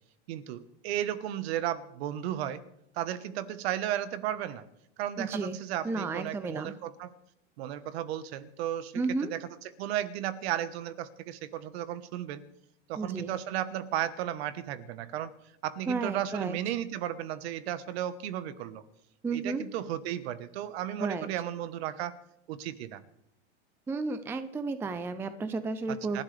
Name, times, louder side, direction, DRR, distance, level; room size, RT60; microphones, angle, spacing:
voice 1, 0.3-2.6 2.9-4.6 5.0-7.1 7.6-9.5 9.8-12.4 12.9-15.3 15.6-18.8 19.3-22.1 22.5-23.0 25.9-26.2, right 11 dB, 60° right, 13 dB, 1.4 m, -34 dB
voice 2, 5.2-5.6 5.8-6.8 8.9-9.3 13.0-13.3 15.9-16.6 19.2-19.6 21.0-21.3 23.9-26.2, right 3 dB, 5° right, 11 dB, 0.5 m, -32 dB
28.5 x 12.0 x 3.5 m, 0.80 s
supercardioid pair, 145°, 36 cm